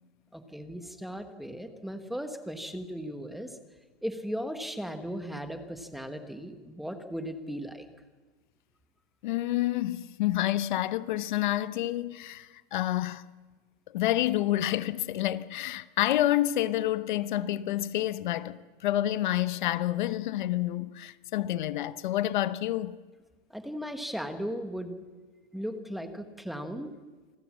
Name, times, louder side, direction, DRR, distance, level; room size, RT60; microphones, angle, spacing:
voice 1, 0.3-3.6 4.0-7.8 23.5-25.0 25.5-26.9, equal, ahead, 1.2 m, -37 dB
voice 2, 9.2-13.2 13.9-23.0, left 14 dB, 50° left, 0.9 m, -28 dB
28.0 x 21.0 x 7.4 m
supercardioid pair, 165°, 31 cm